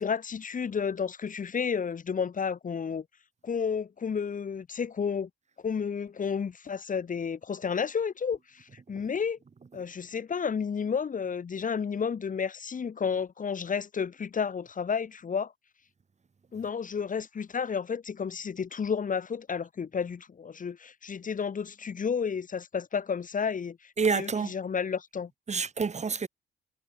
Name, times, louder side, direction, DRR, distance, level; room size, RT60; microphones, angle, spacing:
voice 1, 0.0-3.0 3.4-5.3 5.6-9.4 9.7-15.5 16.5-25.3, left 6 dB, 40° left, 2.4 m, -31 dB
voice 2, 24.0-24.5 25.5-26.3, right 5 dB, 35° right, 3.3 m, -28 dB
cardioid pair, 90°, 20 cm